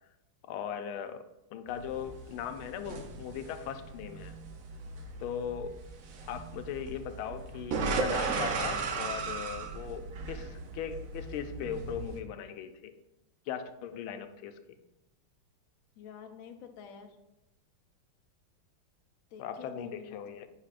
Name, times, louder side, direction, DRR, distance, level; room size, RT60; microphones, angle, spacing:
voice 1, 0.5-1.2 1.5-4.3 5.2-5.7 6.3-12.9 13.5-14.6 19.4-20.5, left 8 dB, 90° left, 8 dB, 1.4 m, -39 dB
sound 1, 1.7-12.2, right 4 dB, 70° right, 0.8 m, -37 dB
voice 2, 16.0-17.2 19.3-20.4, left 7 dB, 65° left, 4 dB, 0.8 m, -49 dB
8.0 x 5.7 x 2.5 m, 0.90 s
omnidirectional pair, 2.3 m